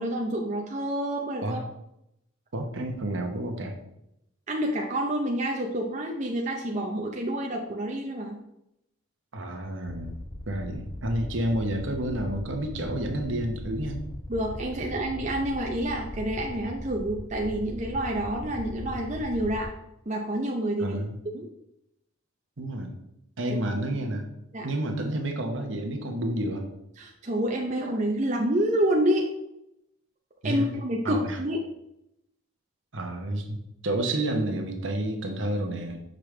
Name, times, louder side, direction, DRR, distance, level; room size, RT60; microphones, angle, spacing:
voice 1, 0.0-1.6 4.5-8.4 14.3-19.7 20.1-21.0 21.3-21.5 24.5-24.7 27.0-29.3 30.4-31.6, right 1 dB, 35° right, 0 dB, 0.6 m, -28 dB
voice 2, 2.5-3.7 9.3-10.2 10.5-14.0 20.8-21.1 22.6-22.9 23.4-24.3 24.6-26.7 30.4-30.7 31.0-31.4 32.9-36.0, right 1 dB, 65° right, 4 dB, 1.0 m, -30 dB
sound 1, 9.9-19.7, left 1 dB, 15° left, 0.4 m, -39 dB
6.5 x 5.1 x 3.3 m, 0.82 s
head